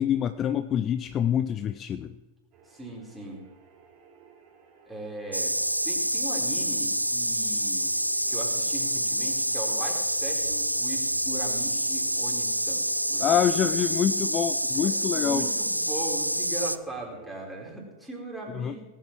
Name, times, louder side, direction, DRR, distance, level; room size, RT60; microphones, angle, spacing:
voice 1, 0.0-2.1 13.2-15.4 18.5-18.7, left 9 dB, 30° left, 12 dB, 0.5 m, -26 dB
sound 1, 2.5-17.4, right 6 dB, 35° right, 3.5 m, -54 dB
voice 2, 2.7-3.4 4.9-5.6 5.8-7.9 8.3-14.0 14.8-18.8, right 1 dB, ahead, -3 dB, 4.3 m, -39 dB
sound 2, 5.3-16.8, right 1 dB, 90° right, 0.4 m, -27 dB
18.0 x 8.2 x 6.1 m, 1.2 s
figure-of-eight pair, 90°, 0 cm